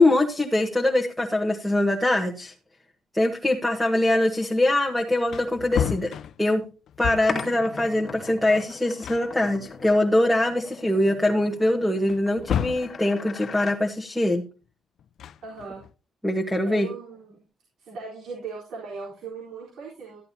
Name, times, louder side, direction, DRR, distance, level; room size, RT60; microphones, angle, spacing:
voice 1, 0.0-2.5 3.1-6.1 6.4-6.6 7.0-14.5 16.2-16.9, left 1 dB, ahead, -1 dB, 1.3 m, -23 dB
Wood, 4.8-4.9 5.2-7.5 8.6-8.7 9.0-10.2 10.7-10.8 12.1-13.0 15.0-15.9, left 9 dB, 60° left, 0.5 m, -31 dB
sound 1, 7.3-13.8, left 5 dB, 30° left, 1.9 m, -39 dB
voice 2, 15.4-15.8 16.6-17.4 17.8-20.2, right 5 dB, 75° right, -3 dB, 3.9 m, -38 dB
13.5 x 10.5 x 2.8 m, 0.33 s
cardioid pair, 140°, 0 cm